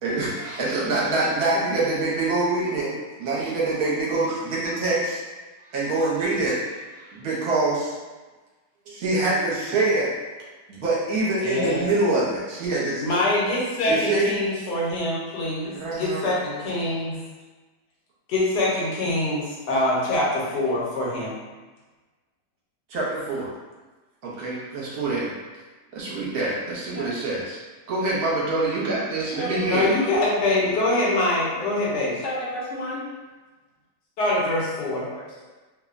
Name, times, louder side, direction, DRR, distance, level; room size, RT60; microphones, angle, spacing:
voice 1, 0.0-2.9 3.2-5.2 5.7-7.9 8.9-10.1 10.8-13.0 13.9-14.3 15.7-16.2 22.9-23.5 24.2-25.3 25.9-27.6 27.9-29.9, right 2 dB, 65° right, -6 dB, 1.1 m, -25 dB
voice 2, 11.4-11.8 13.0-17.2 18.3-21.4 29.6-32.2 34.2-35.1, left 2 dB, 75° left, -5 dB, 1.4 m, -24 dB
voice 3, 20.4-20.7 26.9-27.1 29.3-30.1 32.2-33.0 35.1-35.5, left 1 dB, 60° left, -7 dB, 0.8 m, -33 dB
3.0 x 2.1 x 2.4 m, 1.3 s
omnidirectional pair, 1.8 m